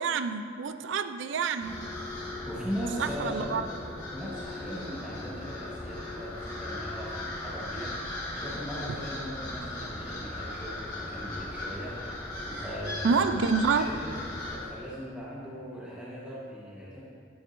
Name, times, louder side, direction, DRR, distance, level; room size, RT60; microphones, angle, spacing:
voice 1, 0.0-1.9 3.0-3.7 13.0-13.9, right 5 dB, 85° right, 10 dB, 0.4 m, -28 dB
sound 1, 1.6-14.6, left 1 dB, 20° left, 1.5 m, -38 dB
voice 2, 2.4-3.7 4.1-14.2 14.4-17.0, equal, 5° right, -8 dB, 1.1 m, -39 dB
9.6 x 7.1 x 2.6 m, 2.2 s
head